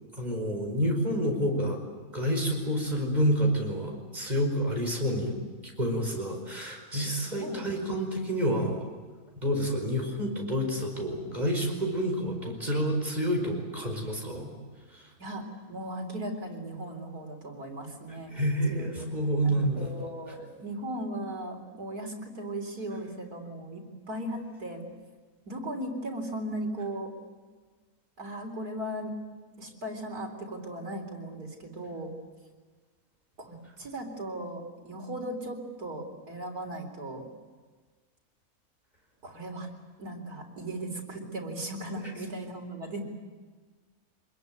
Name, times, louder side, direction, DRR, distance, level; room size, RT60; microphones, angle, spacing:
voice 1, 0.2-1.8 2.1-5.4 5.6-8.8 9.4-14.5 14.9-15.0 18.3-20.1, equal, 30° right, 1 dB, 5.3 m, -29 dB
voice 2, 7.4-7.8 15.2-18.4 18.7-19.1 19.4-24.9 25.5-27.1 28.2-29.2 29.6-32.2 33.4-37.3 39.2-39.7 40.0-43.0, right 1 dB, 90° right, 2 dB, 4.4 m, -37 dB
25.0 x 21.5 x 9.3 m, 1.4 s
omnidirectional pair, 1.6 m